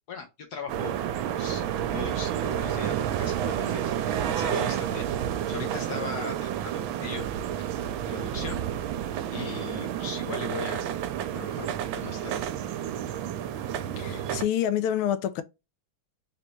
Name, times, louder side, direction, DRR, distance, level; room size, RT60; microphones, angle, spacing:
voice 1, 0.1-1.0 1.4-1.6 1.9-3.9 4.3-5.1 5.5-7.2 7.6-7.8 8.1-8.6 9.3-10.9 11.3-12.4, left 5 dB, 65° left, 1.1 m, -39 dB
sound 1, 0.7-14.4, right 10 dB, 80° right, 1.4 m, -30 dB
voice 2, 14.0-15.4, left 10 dB, 85° left, 1.4 m, -27 dB
3.9 x 3.3 x 3.0 m
omnidirectional pair, 2.3 m